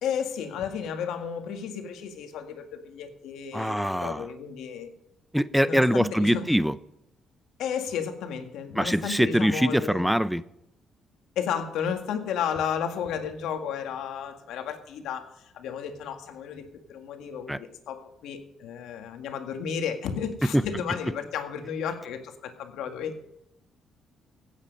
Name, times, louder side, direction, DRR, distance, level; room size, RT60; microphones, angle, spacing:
voice 1, 0.0-4.9 5.6-6.5 7.6-10.1 11.4-15.3 15.5-23.3, left 7 dB, 85° left, 6 dB, 1.9 m, -33 dB
voice 2, 3.5-4.3 5.3-6.7 8.8-10.4 17.5-17.6 20.5-20.6, equal, ahead, 16 dB, 0.5 m, -23 dB
16.5 x 8.6 x 5.3 m, 0.82 s
cardioid pair, 90°, 0 cm